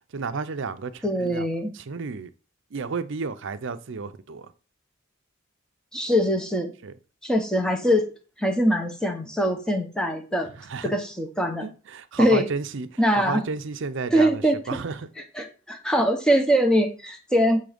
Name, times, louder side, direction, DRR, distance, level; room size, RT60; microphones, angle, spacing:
voice 1, 0.1-1.5 1.9-2.3 2.7-4.5 6.8-6.9 10.7-10.9 11.6-12.9 13.2-14.4 14.7-15.1, right 4 dB, 60° right, 0.6 m, -32 dB
voice 2, 1.0-1.7 5.9-6.7 7.2-8.1 8.4-10.5 10.8-11.7 12.2-12.5 13.0-13.4 14.1-14.6 15.2-17.6, equal, 5° left, 1.0 m, -22 dB
7.0 x 3.7 x 5.1 m
head